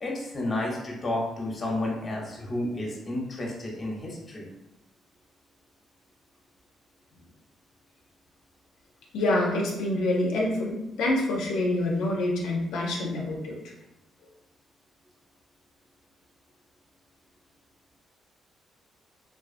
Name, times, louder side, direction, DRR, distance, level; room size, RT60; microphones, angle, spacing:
voice 1, 0.0-4.5, left 1 dB, 30° left, -2 dB, 0.7 m, -31 dB
voice 2, 9.1-13.6, left 1 dB, 90° left, -2 dB, 0.4 m, -26 dB
2.4 x 2.3 x 2.4 m, 0.90 s
cardioid pair, 90°, 0 cm